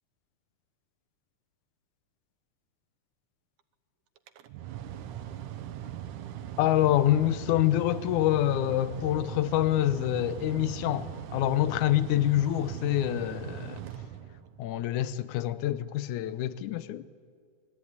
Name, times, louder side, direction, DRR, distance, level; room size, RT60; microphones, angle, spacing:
Mechanical fan, 4.2-14.7, right 10 dB, 75° right, 2.5 m, -40 dB
voice 1, 6.6-13.8 14.6-17.0, left 13 dB, 75° left, 2.1 m, -26 dB
26.5 x 21.5 x 9.7 m
omnidirectional pair, 3.8 m